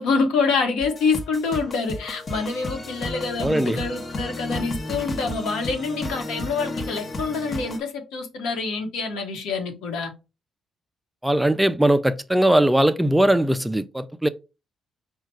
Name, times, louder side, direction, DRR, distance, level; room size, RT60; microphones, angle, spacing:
voice 1, 0.0-10.1, left 4 dB, 90° left, 1.2 m, -26 dB
sound 1, 0.8-7.8, left 1 dB, 35° left, 1.0 m, -33 dB
voice 2, 3.4-3.8 11.2-14.3, right 1 dB, 5° right, 0.4 m, -20 dB
4.6 x 2.4 x 4.6 m
cardioid pair, 90°, 0 cm